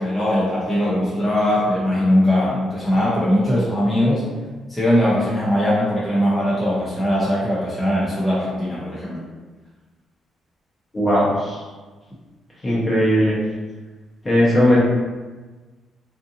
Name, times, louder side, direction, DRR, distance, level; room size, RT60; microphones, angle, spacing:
voice 1, 0.0-4.3 4.7-9.2, equal, 5° left, -9 dB, 0.6 m, -20 dB
voice 2, 10.9-11.6 12.6-13.4 14.2-14.8, equal, 25° left, -6 dB, 1.0 m, -17 dB
2.6 x 2.5 x 2.6 m, 1.3 s
cardioid pair, 90°, 0 cm